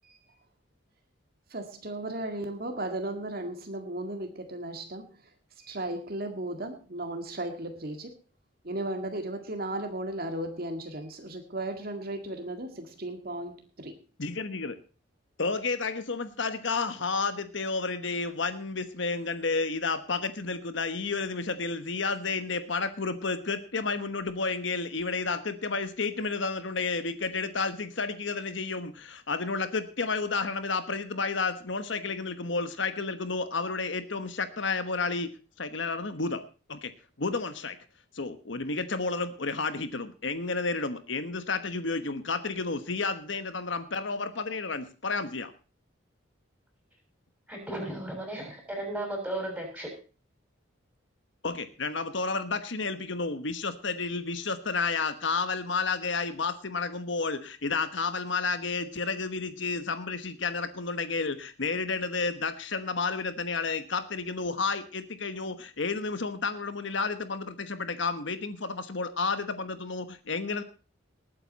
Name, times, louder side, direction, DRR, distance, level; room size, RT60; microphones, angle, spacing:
voice 1, 1.5-5.1 5.6-8.1 8.6-14.0, right 1 dB, 50° right, 5 dB, 2.0 m, -35 dB
voice 2, 14.2-14.8 15.4-35.3 35.6-36.4 36.7-36.9 37.2-37.8 38.1-45.5 51.4-70.6, left 4 dB, 65° left, 11 dB, 1.2 m, -31 dB
voice 3, 47.5-49.9, right 1 dB, 5° right, 2 dB, 6.5 m, -35 dB
20.0 x 9.0 x 4.1 m, 0.36 s
head